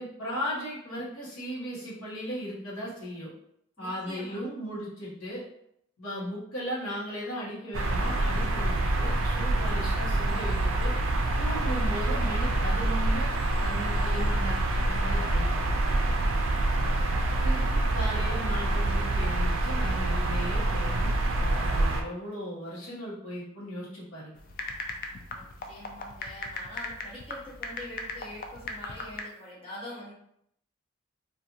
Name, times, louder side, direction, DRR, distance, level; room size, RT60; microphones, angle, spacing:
voice 1, 0.0-3.3 3.8-5.4 6.0-10.9 11.4-13.3 13.6-15.5 17.4-21.1 21.4-24.4, equal, 90° left, -5 dB, 1.1 m, -37 dB
voice 2, 3.8-4.5 25.3-30.1, left 1 dB, 25° left, -7 dB, 0.8 m, -44 dB
sound 1, 7.7-22.0, right 2 dB, 65° right, 0.4 m, -26 dB
sound 2, 24.4-29.2, left 3 dB, 40° left, 0.3 m, -38 dB
2.8 x 2.4 x 2.6 m, 0.73 s
head